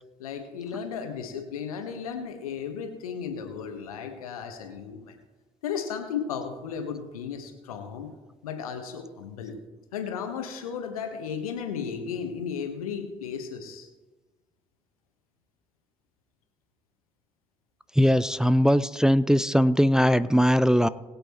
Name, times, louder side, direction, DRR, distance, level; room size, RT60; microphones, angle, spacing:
voice 1, 0.2-5.1 5.6-8.1 8.4-9.6 9.9-13.9, left 7 dB, 80° left, 6 dB, 1.4 m, -34 dB
voice 2, 18.0-20.9, equal, 5° right, 14 dB, 0.6 m, -20 dB
21.5 x 8.6 x 3.1 m, 1.2 s
figure-of-eight pair, 45°, 18 cm